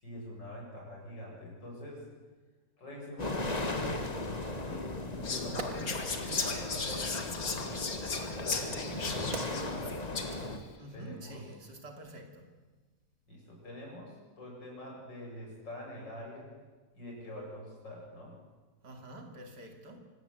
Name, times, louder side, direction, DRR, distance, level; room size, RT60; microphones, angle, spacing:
voice 1, 0.0-2.0 2.8-4.1 4.6-7.8 8.4-9.1 9.4-10.3 10.9-11.4 13.3-16.5 16.9-18.4, left 1 dB, 85° left, -2 dB, 8.2 m, -45 dB
sound 1, 3.2-10.6, left 2 dB, 25° left, 1.7 m, -37 dB
Wood, 4.7-4.8 5.3-6.9 7.9-11.2 11.5-11.7, right 5 dB, 50° right, 1.6 m, -47 dB
Whispering, 5.2-10.5, left 4 dB, 55° left, 2.4 m, -36 dB
voice 2, 10.8-12.5 18.8-20.0, right 1 dB, 70° right, 4 dB, 3.4 m, -48 dB
25.5 x 17.0 x 8.2 m, 1.3 s
omnidirectional pair, 1.9 m